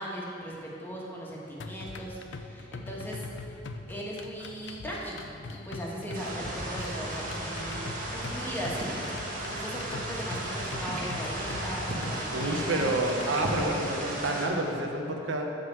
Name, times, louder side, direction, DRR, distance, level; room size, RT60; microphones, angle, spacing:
voice 1, 0.0-3.6 3.9-5.2 5.5-8.9 9.5-12.8, equal, 10° left, -4 dB, 1.4 m, -38 dB
sound 1, 1.6-13.6, left 3 dB, 70° left, 0.5 m, -42 dB
sound 2, 6.1-14.5, right 1 dB, 45° right, 1.4 m, -34 dB
voice 2, 12.3-15.4, right 2 dB, 75° right, 2 dB, 0.9 m, -29 dB
11.0 x 3.8 x 7.5 m, 2.8 s
head